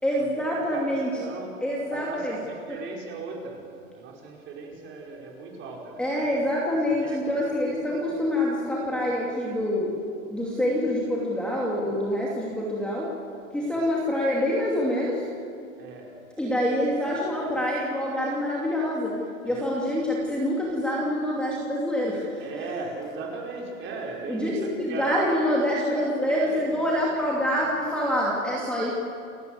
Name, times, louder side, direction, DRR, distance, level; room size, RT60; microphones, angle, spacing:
voice 1, 0.0-1.1 1.6-2.4 2.7-2.8 6.0-9.9 10.2-13.1 13.5-15.3 16.4-19.2 19.4-22.7 24.3-28.9, equal, ahead, -4 dB, 2.6 m, -26 dB
voice 2, 0.7-1.6 1.9-6.3 7.0-7.3 13.6-13.8 15.8-16.1 16.7-16.8 19.4-19.7 22.4-25.4 26.4-26.9, right 3 dB, 25° right, 0 dB, 4.9 m, -38 dB
29.5 x 17.5 x 8.0 m, 2.4 s
supercardioid pair, 155°, 42 cm